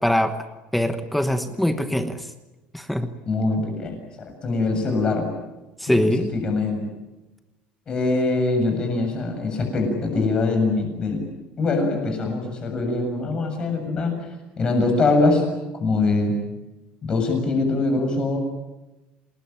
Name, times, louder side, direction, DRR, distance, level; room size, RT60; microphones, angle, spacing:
voice 1, 0.0-0.4 0.7-2.3 2.7-3.1 5.8-6.3, left 1 dB, ahead, 8 dB, 1.1 m, -22 dB
voice 2, 3.3-5.3 6.0-6.9 7.9-11.2 11.6-14.2 14.6-15.4 15.8-16.4 17.0-18.4, left 3 dB, 25° left, 4 dB, 7.2 m, -23 dB
28.5 x 20.5 x 8.9 m, 1.1 s
cardioid pair, 180°, 4 cm